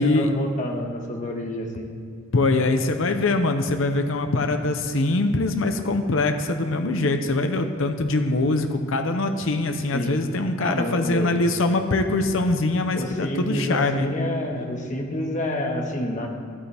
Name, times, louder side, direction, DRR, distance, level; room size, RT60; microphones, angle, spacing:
voice 1, 0.0-1.9 9.9-10.2 10.6-11.4 12.9-16.3, left 1 dB, 40° left, 2 dB, 1.5 m, -28 dB
voice 2, 2.3-14.1, left 2 dB, 70° left, 6 dB, 0.7 m, -23 dB
13.5 x 13.0 x 3.5 m, 2.2 s
head